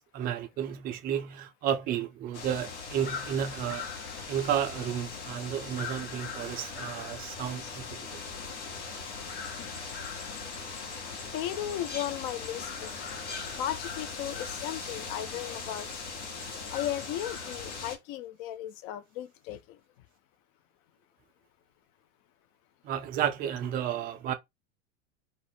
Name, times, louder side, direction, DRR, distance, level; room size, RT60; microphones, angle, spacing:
voice 1, 0.1-3.8 4.3-7.9 22.8-24.3, right 9 dB, 25° right, 0.4 m, -32 dB
sound 1, 2.3-18.0, left 5 dB, 70° left, 1.1 m, -39 dB
voice 2, 10.7-12.9 13.5-16.0 16.7-19.8, left 12 dB, 40° left, 0.5 m, -36 dB
2.4 x 2.0 x 3.1 m
hypercardioid pair, 95°, 36 cm